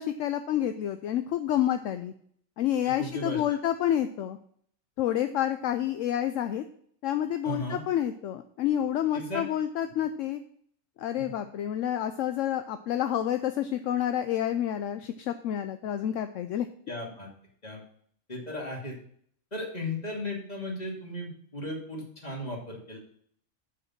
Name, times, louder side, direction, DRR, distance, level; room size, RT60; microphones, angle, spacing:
voice 1, 0.0-2.1 2.6-4.4 5.0-6.6 7.0-10.4 11.0-16.7, left 11 dB, 70° left, 9 dB, 0.9 m, -29 dB
voice 2, 2.8-3.6 7.4-7.8 9.1-9.4 11.2-11.3 16.9-17.3 17.6-17.8 18.3-18.9 19.5-23.0, left 1 dB, 30° left, -1 dB, 2.6 m, -36 dB
7.9 x 6.3 x 5.9 m, 0.62 s
omnidirectional pair, 1.4 m